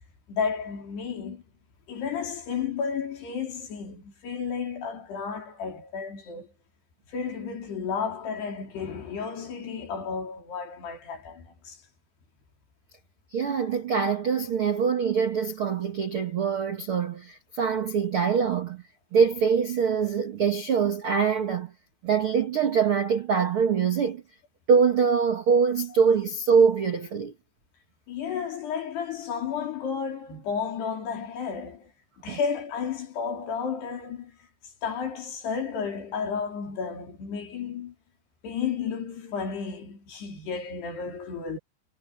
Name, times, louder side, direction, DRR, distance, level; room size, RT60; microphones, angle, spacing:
voice 1, 0.3-1.4 1.9-6.5 7.1-11.8 28.1-31.9 32.2-34.3 34.8-37.9 38.4-41.6, left 6 dB, 65° left, 6.2 m, -32 dB
voice 2, 13.3-18.8 19.1-21.7 22.0-24.2 24.7-27.3 32.3-32.4, right 6 dB, 55° right, 1.4 m, -24 dB
omnidirectional pair, 5.1 m